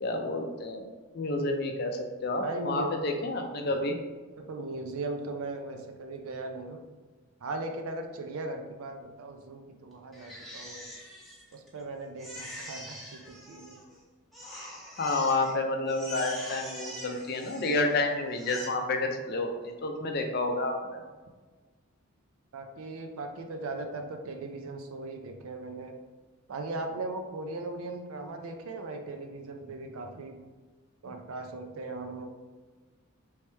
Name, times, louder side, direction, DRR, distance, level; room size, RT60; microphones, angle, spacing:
voice 1, 0.0-0.8 1.1-4.0 15.0-21.0, left 2 dB, 45° left, 4 dB, 0.4 m, -30 dB
voice 2, 2.4-2.9 3.6-3.7 4.4-6.8 7.4-10.9 11.5-13.8 22.5-25.9 26.5-30.4 31.0-32.3, right 2 dB, 75° right, 5 dB, 0.4 m, -38 dB
Crying sobbing, 10.1-11.8 12.2-14.0 14.3-15.5 15.9-18.0 18.3-18.7, equal, ahead, 0.6 m, -44 dB
3.3 x 3.1 x 3.1 m, 1.3 s
head